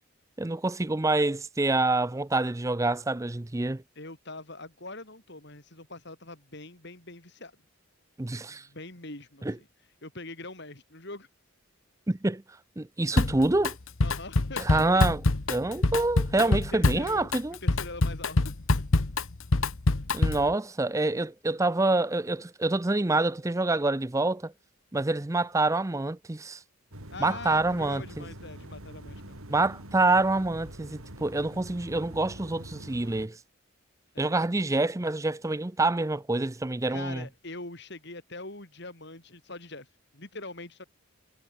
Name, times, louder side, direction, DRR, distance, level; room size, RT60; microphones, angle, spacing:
voice 1, 0.4-3.8 8.2-8.7 9.4-9.6 12.1-12.4 12.8-13.8 14.6-15.2 15.5-17.6 20.1-24.5 24.9-26.6 27.2-28.3 29.5-33.4 34.2-37.3, right 2 dB, 15° right, 0.5 m, -27 dB
voice 2, 3.9-7.5 8.5-9.7 10.0-11.3 14.0-15.0 15.6-15.8 16.4-17.3 17.6-18.6 27.1-29.4 34.1-34.3 36.9-39.9 40.1-40.8, left 2 dB, 55° left, 5.1 m, -43 dB
Drum kit, 13.2-13.7 14.0-20.5, left 2 dB, 75° left, 1.3 m, -25 dB
sound 1, 26.9-33.3, right 1 dB, 90° right, 7.0 m, -44 dB
head